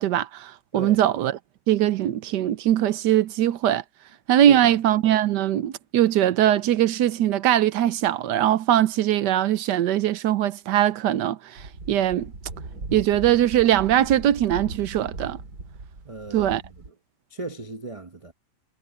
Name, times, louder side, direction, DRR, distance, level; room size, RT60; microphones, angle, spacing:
voice 1, 0.0-1.3 1.7-3.8 4.3-12.3 12.9-15.4 16.3-16.6, right 11 dB, 75° right, 1.3 m, -21 dB
voice 2, 0.7-1.0 4.5-4.8 16.0-16.9 17.3-18.3, right 3 dB, 30° right, 0.6 m, -36 dB
sound 1, 11.6-16.9, right 3 dB, 55° right, 3.4 m, -38 dB
omnidirectional pair, 2.0 m